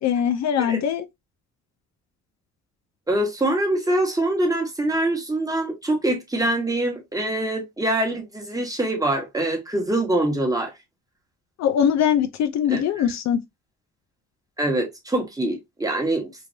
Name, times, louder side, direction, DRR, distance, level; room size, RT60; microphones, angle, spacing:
voice 1, 0.0-1.1 11.6-13.4, left 9 dB, 65° left, 0.5 m, -21 dB
voice 2, 3.1-10.7 12.7-13.0 14.6-16.3, right 1 dB, 10° right, 1.1 m, -24 dB
3.1 x 2.5 x 2.6 m
cardioid pair, 90°, 30 cm